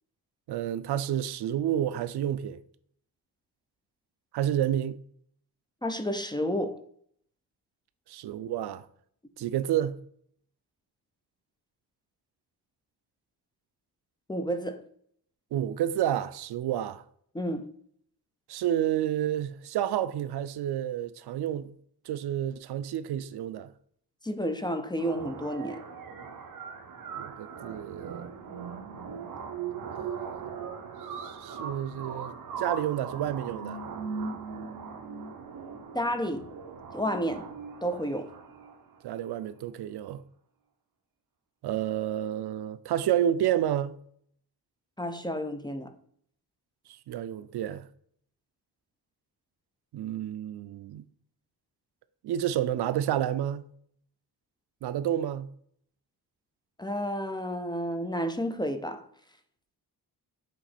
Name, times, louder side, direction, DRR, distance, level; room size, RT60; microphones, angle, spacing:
voice 1, 0.5-2.6 4.3-5.0 8.1-8.8 9.4-10.0 15.5-17.0 18.5-21.8 22.1-23.7 27.2-28.3 30.0-30.7 31.1-33.8 39.0-40.2 41.6-44.0 47.1-47.8 49.9-51.0 52.2-53.7 54.8-55.5, right 11 dB, 75° right, 0.5 m, -30 dB
voice 2, 5.8-6.8 14.3-14.8 17.3-17.7 24.2-25.8 35.9-36.4 36.9-37.5 37.8-38.3 45.0-45.9 56.8-59.0, equal, 10° left, 0.4 m, -31 dB
sound 1, 25.0-39.0, right 6 dB, 55° right, 1.0 m, -39 dB
7.6 x 3.0 x 4.2 m
wide cardioid pair, 135°, 39 cm